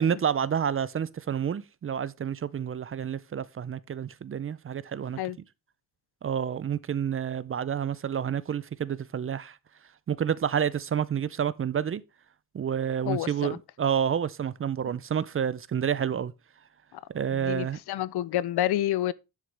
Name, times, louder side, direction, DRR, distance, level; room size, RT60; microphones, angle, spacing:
voice 1, 0.0-5.2 6.2-9.6 10.1-12.0 12.5-16.3 17.1-17.8, right 8 dB, 35° right, 0.4 m, -29 dB
voice 2, 13.1-13.6 17.3-19.1, left 13 dB, 85° left, 0.6 m, -29 dB
11.0 x 6.4 x 3.3 m
wide cardioid pair, 145°, 38 cm